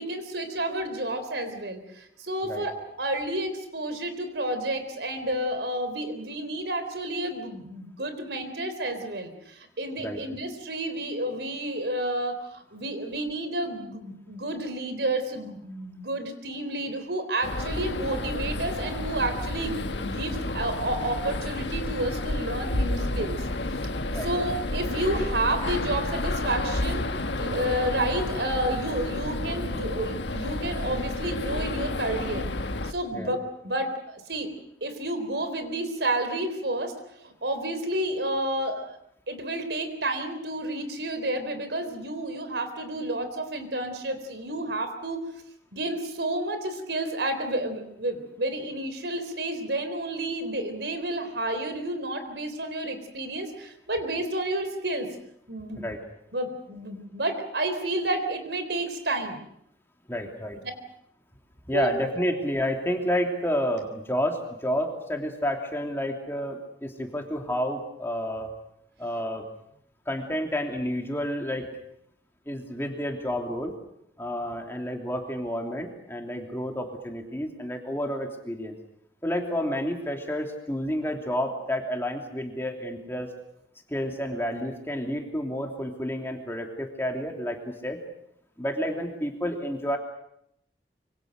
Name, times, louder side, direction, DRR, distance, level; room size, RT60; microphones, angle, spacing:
voice 1, 0.0-2.7 3.0-23.5 24.2-27.0 27.4-32.5 32.8-33.4 33.6-34.5 34.8-36.9 37.2-39.0 39.3-45.2 45.7-55.1 55.5-55.8 56.3-59.4 61.7-61.9, right 1 dB, 70° right, 8 dB, 3.9 m, -30 dB
sound 1, 17.4-32.9, left 2 dB, 80° left, 1.6 m, -30 dB
voice 2, 60.1-60.6 61.7-68.5 69.0-69.4 70.1-71.7 72.5-73.7 74.2-78.8 79.2-83.3 83.9-88.0 88.6-90.0, equal, 15° left, 2 dB, 3.1 m, -30 dB
26.0 x 25.0 x 6.6 m, 0.74 s
head